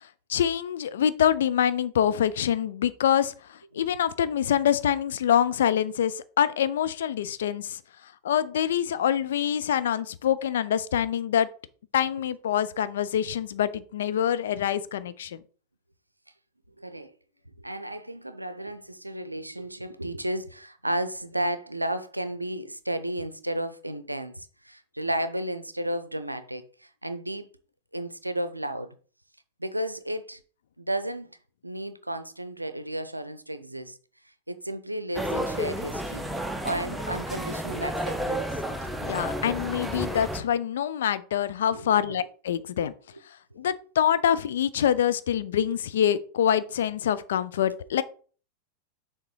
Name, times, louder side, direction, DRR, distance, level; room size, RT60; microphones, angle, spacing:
voice 1, 0.3-7.8 8.2-11.5 11.9-15.4 39.0-42.9 43.6-48.0, left 9 dB, 60° left, 0.5 m, -25 dB
voice 2, 16.8-17.2 17.6-27.5 27.9-28.9 29.6-30.4 30.8-31.4 31.6-34.0 34.5-36.3 36.6-38.6 41.7-42.0, right 1 dB, 85° right, 0.5 m, -33 dB
sound 1, 35.2-40.4, equal, 5° right, 0.8 m, -31 dB
6.6 x 3.7 x 4.7 m
figure-of-eight pair, 90°, 0 cm